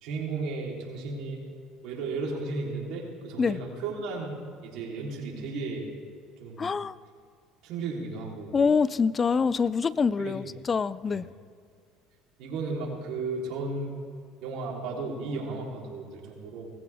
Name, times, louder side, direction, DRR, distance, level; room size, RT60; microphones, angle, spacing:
voice 1, 0.0-1.4 1.8-5.9 6.4-6.7 7.6-8.5 10.2-10.4 11.1-11.2 12.4-14.0 14.4-16.7, right 3 dB, 65° right, -2 dB, 3.8 m, -34 dB
voice 2, 6.6-6.9 8.5-11.2, left 5 dB, 30° left, 18 dB, 0.3 m, -25 dB
19.0 x 15.0 x 3.6 m, 2.1 s
supercardioid pair, 95°, 0 cm